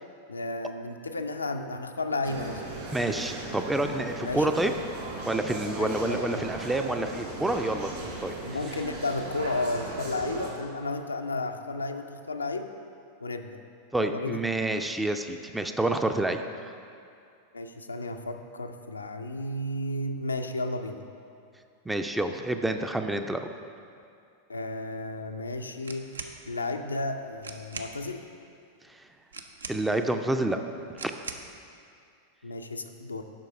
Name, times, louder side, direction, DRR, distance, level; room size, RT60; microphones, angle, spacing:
voice 1, 0.3-2.7 4.2-4.6 5.8-6.5 8.4-12.7 13.2-13.6 14.0-14.4 17.5-21.0 24.5-26.1 26.5-28.2 32.4-33.2, left 2 dB, 80° left, 6 dB, 0.4 m, -33 dB
sound 1, 2.2-10.5, right 2 dB, 50° right, 2.0 m, -38 dB
voice 2, 2.9-4.7 5.2-8.3 13.9-16.7 21.9-23.5 28.9-29.0 29.7-30.6 31.0-31.1, right 1 dB, 5° right, 6 dB, 0.4 m, -28 dB
sound 2, 25.8-26.4 27.1-27.2 27.4-28.0 29.3-30.1 31.0-31.5, right 4 dB, 70° right, 0.5 m, -40 dB
7.5 x 5.2 x 5.1 m, 2.4 s
figure-of-eight pair, 90°, 0 cm